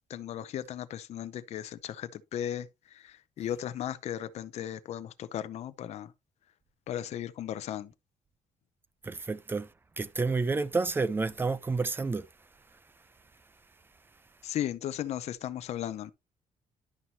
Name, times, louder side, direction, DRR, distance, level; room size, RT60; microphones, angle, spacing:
voice 1, 0.1-6.1 6.9-7.9 14.4-16.1, left 11 dB, 55° left, 0.6 m, -36 dB
voice 2, 9.0-12.3 12.7-12.8, right 4 dB, 15° right, 0.5 m, -30 dB
11.0 x 5.6 x 2.9 m
cardioid pair, 160°, 13 cm